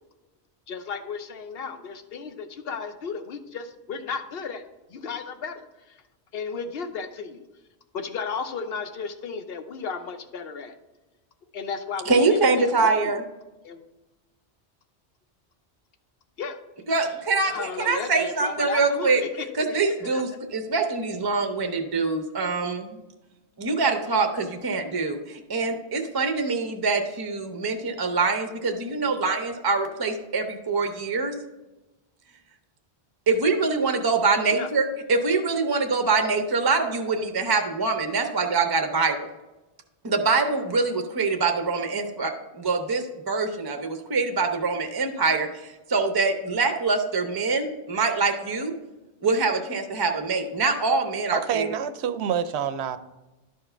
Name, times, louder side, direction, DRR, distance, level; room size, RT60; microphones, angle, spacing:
voice 1, 0.7-4.6 4.9-6.0 6.3-7.4 7.9-10.7 11.5-13.2 13.6-13.8 16.4-16.6 17.4-20.2 34.5-34.7, left 5 dB, 60° left, 0.9 m, -34 dB
voice 2, 12.1-13.2 16.9-19.2 19.6-23.0 23.6-31.3 33.3-39.2 40.0-48.7 49.2-51.7, right 4 dB, 25° right, 0.6 m, -24 dB
voice 3, 51.3-53.0, right 8 dB, 75° right, 0.8 m, -27 dB
11.5 x 4.6 x 4.4 m
omnidirectional pair, 1.1 m